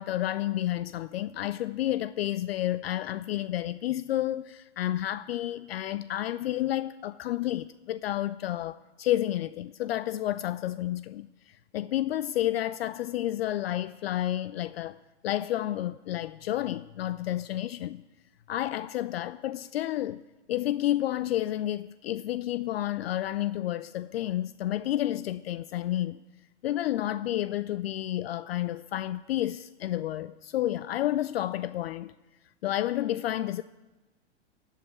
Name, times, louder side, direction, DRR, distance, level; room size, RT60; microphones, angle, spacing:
voice 1, 0.0-18.0 18.5-20.2 20.5-26.2 26.6-32.1 32.6-33.6, left 13 dB, 60° left, 0.5 m, -30 dB
15.5 x 5.7 x 9.6 m
figure-of-eight pair, 105°, 35 cm